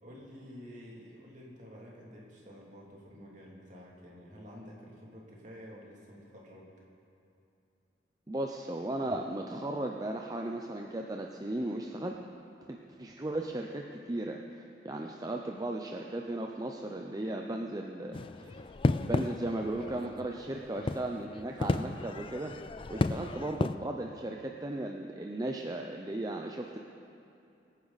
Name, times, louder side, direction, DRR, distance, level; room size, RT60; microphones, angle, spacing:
voice 1, 0.0-6.7 19.7-20.0 22.9-23.1, equal, 45° right, -3 dB, 2.7 m, -50 dB
voice 2, 8.3-12.2 12.7-18.6 19.1-22.5 22.9-26.8, right 1 dB, 20° right, 2 dB, 0.6 m, -36 dB
sound 1, 18.1-23.8, left 2 dB, 30° left, 0.4 m, -33 dB
23.5 x 9.8 x 4.1 m, 2.7 s
head